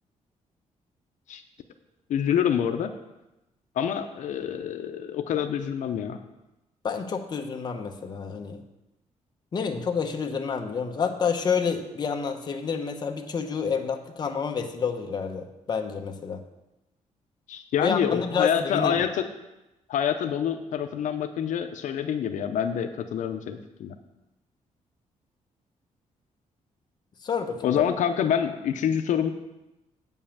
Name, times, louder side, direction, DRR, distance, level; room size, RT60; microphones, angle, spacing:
voice 1, 2.1-2.9 3.8-6.2 17.5-19.3 19.9-23.9 27.6-29.3, left 8 dB, 75° left, 7 dB, 0.6 m, -26 dB
voice 2, 6.8-8.6 9.5-16.4 17.8-18.9 27.2-27.8, left 6 dB, 35° left, 4 dB, 0.8 m, -29 dB
8.6 x 5.5 x 7.2 m, 0.96 s
wide cardioid pair, 165°, 13 cm